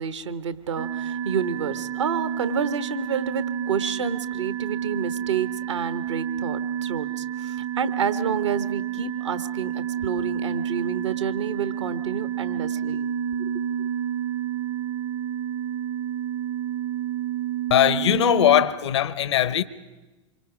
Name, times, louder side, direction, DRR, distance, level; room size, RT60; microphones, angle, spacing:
voice 1, 0.0-13.1 13.4-13.9, right 6 dB, 80° right, 1.2 m, -29 dB
sound 1, 0.8-18.6, right 9 dB, 30° right, 0.6 m, -29 dB
voice 2, 17.7-19.6, left 12 dB, 70° left, 0.8 m, -20 dB
26.5 x 24.0 x 4.9 m
figure-of-eight pair, 95°, 15 cm